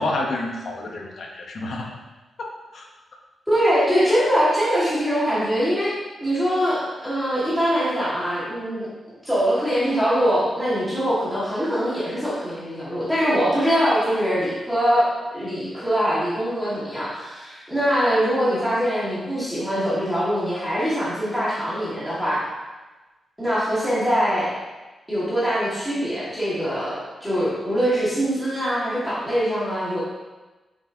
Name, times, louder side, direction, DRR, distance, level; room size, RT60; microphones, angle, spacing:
voice 1, 0.0-2.0 2.4-2.9, left 2 dB, 60° left, 1 dB, 1.0 m, -29 dB
voice 2, 3.5-5.9 6.2-8.9 9.2-15.1 15.3-22.4 23.4-24.5 25.1-30.0, equal, ahead, -10 dB, 2.0 m, -23 dB
7.0 x 6.0 x 2.9 m, 1.2 s
wide cardioid pair, 140°, 0 cm